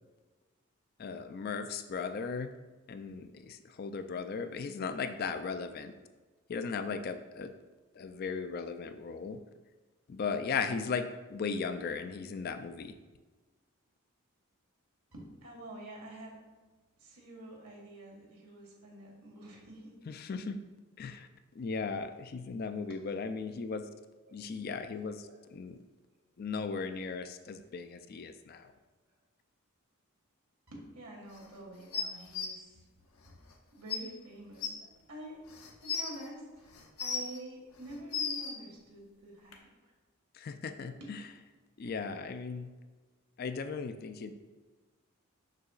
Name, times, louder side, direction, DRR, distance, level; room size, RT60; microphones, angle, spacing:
voice 1, 1.0-2.5 2.9-5.9 6.5-7.5 8.0-9.4 10.1-12.9 20.1-20.6 21.0-21.3 21.6-23.9 24.3-25.8 26.4-28.7 40.3-41.2 41.8-42.7 43.4-44.3, left 5 dB, 45° left, 9 dB, 0.3 m, -37 dB
voice 2, 15.1-16.4 17.0-20.0 22.9-23.0 24.2-24.4 25.2-25.4 30.7-33.4 33.7-35.4 35.8-36.7 37.0-39.7 41.0-41.1, right 1 dB, 90° right, -2 dB, 1.8 m, -48 dB
sound 1, 31.9-32.5 33.5-33.6 33.9-34.0 34.6-34.7 35.5-36.1 36.7-37.4 37.9-38.5 39.5-39.6, left 6 dB, 80° left, 0.8 m, -34 dB
6.6 x 6.1 x 2.4 m, 1.3 s
head